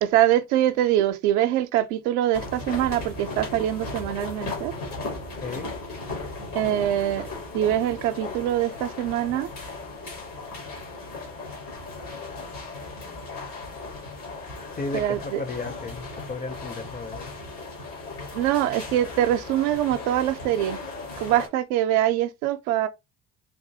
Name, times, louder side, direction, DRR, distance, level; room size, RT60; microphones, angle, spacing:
voice 1, 0.0-4.7 6.5-7.2 7.5-9.5 14.9-15.4 18.3-20.8 21.2-22.9, right 12 dB, 70° right, 0.6 m, -24 dB
sound 1, 2.3-21.5, left 3 dB, 90° left, 1.5 m, -37 dB
voice 2, 5.4-5.7 14.8-17.3, left 3 dB, 20° left, 0.5 m, -34 dB
3.5 x 2.6 x 2.7 m
hypercardioid pair, 50°, 44 cm